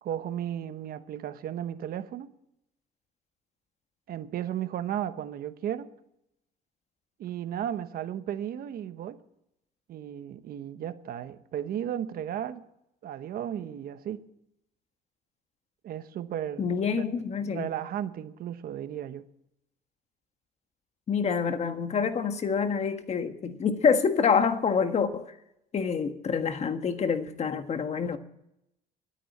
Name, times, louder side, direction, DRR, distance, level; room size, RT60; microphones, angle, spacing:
voice 1, 0.0-2.3 4.1-5.9 7.2-9.2 9.9-12.6 13.0-14.3 15.8-16.7 17.4-19.3, right 10 dB, 60° right, 1.1 m, -34 dB
voice 2, 16.6-17.7 21.1-25.3 25.7-28.2, left 6 dB, 40° left, 1.5 m, -27 dB
12.5 x 9.9 x 8.5 m
cardioid pair, 110°, 17 cm